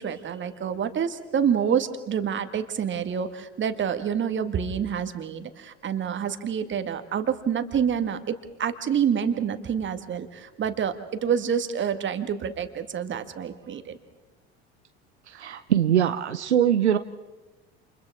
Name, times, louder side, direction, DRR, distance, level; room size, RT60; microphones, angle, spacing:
voice 1, 0.0-14.0, right 8 dB, 35° right, 9 dB, 1.8 m, -27 dB
voice 2, 15.3-17.0, right 10 dB, 85° right, 10 dB, 0.7 m, -22 dB
29.0 x 28.0 x 3.7 m, 1.1 s
figure-of-eight pair, 65°, 33 cm